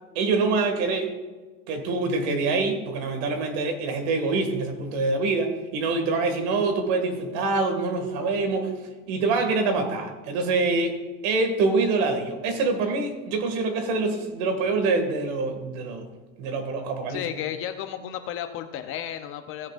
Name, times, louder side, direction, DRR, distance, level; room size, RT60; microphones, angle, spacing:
voice 1, 0.2-1.1 1.7-8.7 9.1-10.9 11.2-16.1 16.4-17.2, right 3 dB, 60° right, 6 dB, 2.0 m, -25 dB
voice 2, 17.1-19.7, left 10 dB, 35° left, 8 dB, 0.6 m, -33 dB
16.5 x 8.4 x 2.5 m, 1.3 s
supercardioid pair, 150°, 37 cm